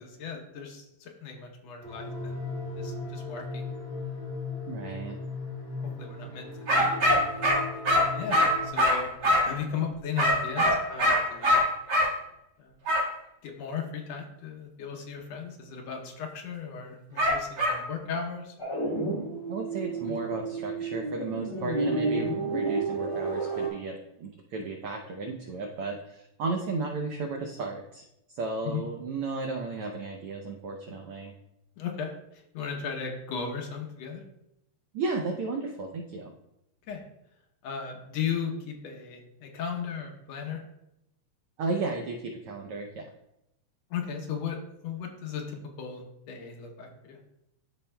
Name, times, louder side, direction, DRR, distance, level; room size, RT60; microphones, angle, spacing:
voice 1, 0.0-2.4 2.8-3.6 5.8-7.2 7.9-9.1 9.5-11.6 12.6-12.7 13.4-18.7 20.1-20.2 22.2-22.4 28.6-28.8 31.8-34.2 36.9-37.0 37.6-40.6 43.9-44.6 44.8-47.2, left 6 dB, 70° left, 2 dB, 1.8 m, -36 dB
sound 1, 1.8-8.7, left 3 dB, 45° left, 3.1 m, -37 dB
voice 2, 4.7-5.2 19.5-31.3 34.9-36.3 41.6-43.0, right 3 dB, 90° right, 2 dB, 1.2 m, -34 dB
sound 2, 6.7-9.6 10.2-12.1 12.8-13.1 17.2-17.8, equal, 50° right, 2.4 m, -23 dB
sound 3, 18.6-23.7, right 3 dB, 15° left, 1.1 m, -31 dB
13.0 x 4.4 x 2.2 m, 0.84 s
omnidirectional pair, 3.3 m